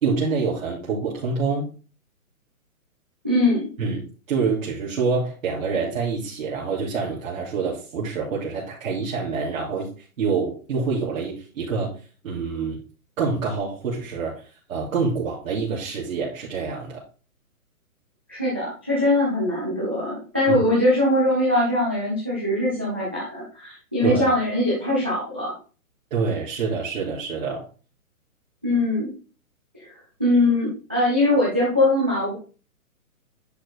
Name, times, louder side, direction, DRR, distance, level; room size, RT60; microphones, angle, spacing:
voice 1, 0.0-1.7 3.8-9.9 10.2-11.9 12.2-12.8 13.2-14.3 14.7-17.0 20.5-20.6 24.0-24.3 26.1-27.6, right 4 dB, 65° right, -6 dB, 2.8 m, -26 dB
voice 2, 3.2-3.7 18.3-25.5 28.6-29.1 29.7-32.3, left 1 dB, 10° right, -6 dB, 0.3 m, -22 dB
10.0 x 4.6 x 3.5 m, 0.36 s
hypercardioid pair, 150°, 43 cm